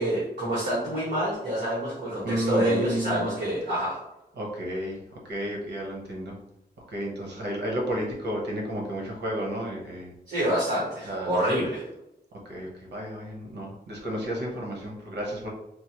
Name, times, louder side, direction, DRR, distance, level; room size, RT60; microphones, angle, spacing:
voice 1, 0.0-4.0 10.3-11.8, right 1 dB, 55° right, -8 dB, 1.4 m, -27 dB
voice 2, 2.2-3.3 4.3-5.0 5.2-6.4 6.9-10.1 11.1-11.3 12.5-15.5, equal, 85° right, -1 dB, 1.0 m, -32 dB
4.6 x 2.0 x 2.9 m, 0.87 s
wide cardioid pair, 175°, 17 cm